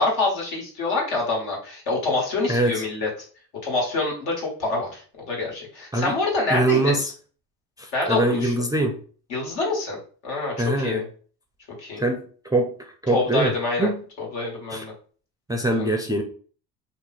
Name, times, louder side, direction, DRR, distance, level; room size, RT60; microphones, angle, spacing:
voice 1, 0.0-3.1 3.6-5.0 5.3-7.0 7.9-8.5 9.3-10.0 10.2-11.0 11.8-12.0 13.1-13.9 14.2-14.9 15.8-15.9, left 3 dB, 75° left, -2 dB, 1.7 m, -26 dB
voice 2, 2.5-2.8 5.9-6.1 6.5-7.1 7.8-9.0 10.6-11.0 12.0-12.7 13.0-14.0 14.7-14.8 15.5-16.2, right 1 dB, 10° right, 2 dB, 0.3 m, -23 dB
2.8 x 2.3 x 4.1 m, 0.42 s
supercardioid pair, 95°, 45 cm